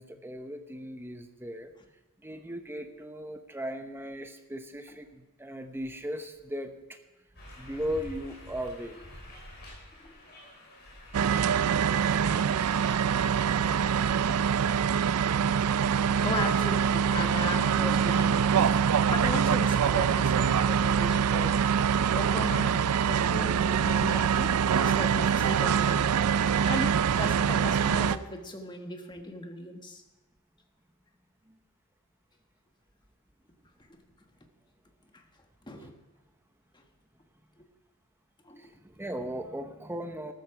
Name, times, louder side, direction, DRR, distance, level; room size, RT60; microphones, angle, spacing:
voice 1, 0.0-1.7 2.2-7.0 7.6-9.0 17.8-18.0 31.5-31.6 38.6-40.3, equal, 10° right, 7 dB, 0.8 m, -37 dB
sound 1, 7.4-16.1, left 1 dB, 45° left, 5.5 m, -49 dB
sound 2, 11.1-28.2, right 7 dB, 85° right, 0.4 m, -24 dB
voice 2, 12.0-14.0 15.4-18.8 19.1-21.9 22.1-30.0 35.1-35.2 35.7-36.0 36.7-36.8 37.6-37.7 38.4-38.7, left 1 dB, 20° left, 4 dB, 1.3 m, -38 dB
13.5 x 13.0 x 4.8 m, 1.2 s
head